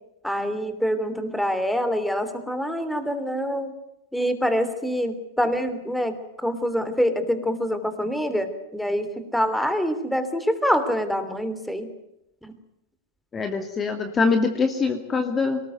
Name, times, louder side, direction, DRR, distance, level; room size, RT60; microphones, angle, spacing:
voice 1, 0.2-3.7 4.1-11.9 12.4-12.5, equal, ahead, 10 dB, 3.1 m, -25 dB
voice 2, 13.3-15.6, left 4 dB, 20° left, 6 dB, 2.5 m, -23 dB
22.5 x 19.5 x 9.4 m, 0.84 s
hypercardioid pair, 125°, 0 cm